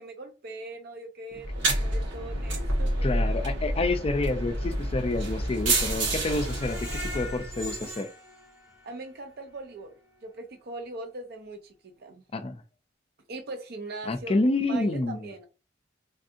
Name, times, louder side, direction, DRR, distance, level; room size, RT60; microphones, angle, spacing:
voice 1, 0.0-3.4 8.8-12.2 13.3-14.4 14.7-15.5, right 2 dB, 55° right, 0.5 m, -41 dB
sound 1, 1.4-7.8, right 1 dB, 75° right, 1.4 m, -29 dB
voice 2, 3.0-8.1 12.3-12.6 14.1-15.2, left 2 dB, 30° left, 0.4 m, -28 dB
Screech, 6.2-9.2 9.6-9.7 10.1-10.2, left 1 dB, 15° right, 0.9 m, -41 dB
3.5 x 2.6 x 2.5 m
head